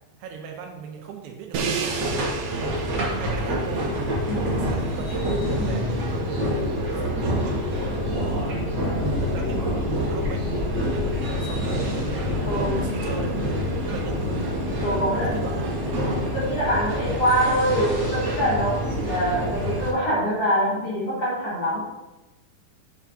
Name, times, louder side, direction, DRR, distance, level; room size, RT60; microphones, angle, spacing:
voice 1, 0.2-2.1 2.5-3.9 4.3-7.6 9.2-14.5 14.8-15.7, right 6 dB, 90° right, 2 dB, 2.8 m, -38 dB
Crash cymbal, 1.5-7.5, right 5 dB, 75° right, 2.1 m, -34 dB
sound 1, 1.8-19.9, equal, 45° right, 1.5 m, -26 dB
voice 2, 4.3-4.8 5.6-5.9 9.1-9.2 12.4-13.0 14.8-15.4 16.2-21.8, equal, 55° left, -6 dB, 1.7 m, -25 dB
7.6 x 7.2 x 2.7 m, 1.1 s
omnidirectional pair, 4.6 m